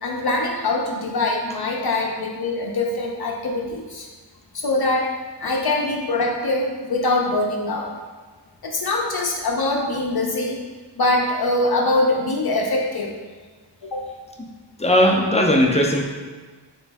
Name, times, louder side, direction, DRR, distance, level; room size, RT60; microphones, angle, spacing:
voice 1, 0.0-4.1 4.5-5.1 5.4-7.9 8.6-10.6 11.0-13.1 13.9-14.0, left 2 dB, 60° left, 0 dB, 0.6 m, -23 dB
voice 2, 14.8-16.1, equal, 15° left, 1 dB, 0.5 m, -18 dB
4.4 x 3.1 x 3.4 m, 1.4 s
wide cardioid pair, 70°, 43 cm